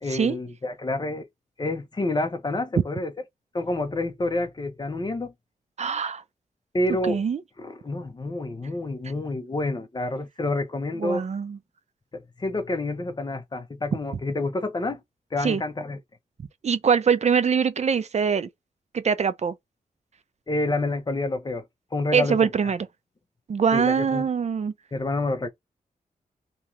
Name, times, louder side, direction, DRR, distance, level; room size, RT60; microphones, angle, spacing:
voice 1, 0.0-1.3 1.6-3.1 3.5-5.3 6.7-7.2 7.6-11.2 12.1-15.0 15.3-16.0 20.5-22.7 23.7-24.3 24.9-25.5, left 2 dB, 30° left, 0.9 m, -28 dB
voice 2, 5.8-6.2 7.1-7.4 11.0-11.6 15.4-15.6 16.6-18.5 18.9-19.5 22.1-22.8 23.5-24.7, right 6 dB, 50° right, 0.6 m, -23 dB
3.1 x 2.9 x 3.6 m
wide cardioid pair, 95°, 14 cm